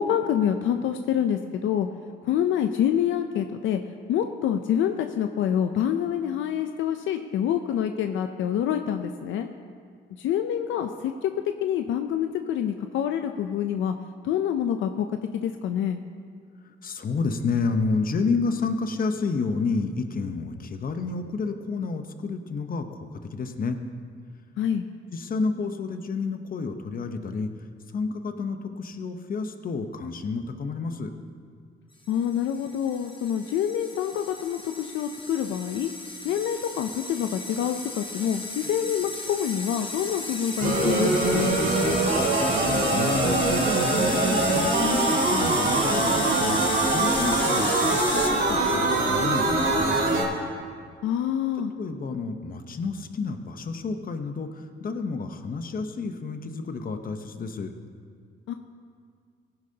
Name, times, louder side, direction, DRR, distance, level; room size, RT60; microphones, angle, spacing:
voice 1, 0.0-1.9 2.2-3.8 4.1-9.5 10.2-10.9 11.2-11.3 11.6-13.9 14.2-15.1 15.3-16.0 24.6-24.8 32.1-35.9 36.2-41.6 51.0-51.7 58.5-58.6, left 9 dB, 80° left, 7 dB, 0.5 m, -26 dB
voice 2, 16.8-23.8 25.1-27.5 27.9-31.1 42.3-50.4 51.8-54.5 54.8-57.7, left 4 dB, 45° left, 7 dB, 0.9 m, -30 dB
sound 1, 32.2-48.3, left 2 dB, 25° left, 1.4 m, -34 dB
sound 2, 40.6-50.2, right 2 dB, 75° right, 3.5 m, -23 dB
17.5 x 10.5 x 2.8 m, 2.1 s
cardioid pair, 90°, 20 cm